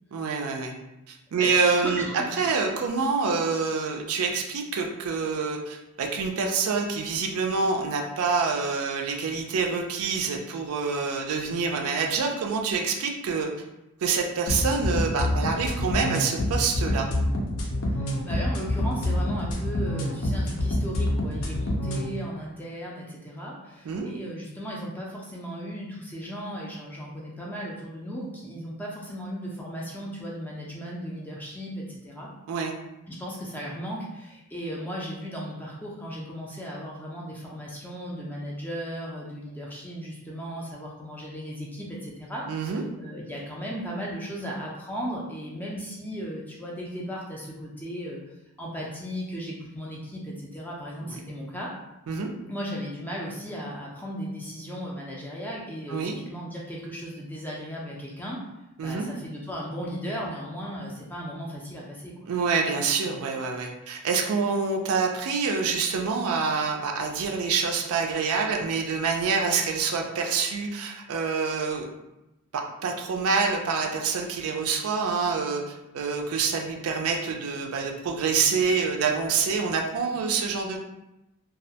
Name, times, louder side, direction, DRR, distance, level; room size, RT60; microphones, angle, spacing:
voice 1, 0.1-0.7 1.1-13.5 14.0-17.1 23.8-24.1 32.5-32.7 42.5-42.8 51.0-51.2 52.1-52.3 55.9-56.1 58.8-59.0 62.3-71.9 72.8-80.8, right 5 dB, 75° right, 2 dB, 0.4 m, -26 dB
voice 2, 1.4-2.5 17.9-32.3 33.1-48.2 48.6-51.7 52.5-58.4 58.8-62.1, equal, 10° left, -4 dB, 0.3 m, -36 dB
sound 1, 14.5-22.0, left 1 dB, 70° left, 0.5 m, -27 dB
2.3 x 2.1 x 2.7 m, 0.93 s
head